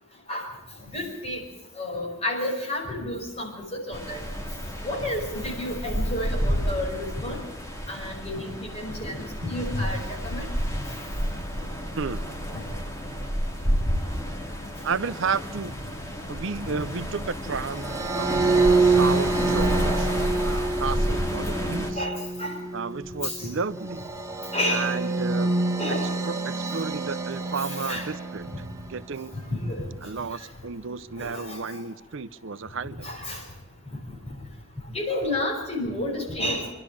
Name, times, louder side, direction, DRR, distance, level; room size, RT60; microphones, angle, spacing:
voice 1, 0.9-1.4 1.8-3.5 3.9-4.2 4.8-7.4 7.9-8.5 8.7-10.5 12.5-12.6 16.6-16.8 21.9-22.6 23.2-23.5 24.5-24.9 25.8-26.1 27.3-27.4 27.7-28.1 29.5-29.8 31.2-31.6 33.0-33.4 34.9-36.7, left 1 dB, 30° left, -1 dB, 5.9 m, -30 dB
sound 1, 3.9-21.9, equal, 15° left, 2.6 m, -30 dB
voice 2, 12.0-12.3 14.8-15.7 16.3-20.1 20.4-22.0 22.7-24.1 24.7-25.5 26.2-28.5 28.9-29.4 30.0-33.1, right 5 dB, 65° right, 15 dB, 0.7 m, -32 dB
sound 2, 17.7-29.1, right 3 dB, 15° right, 1.6 m, -26 dB
25.5 x 12.0 x 8.6 m, 1.0 s
head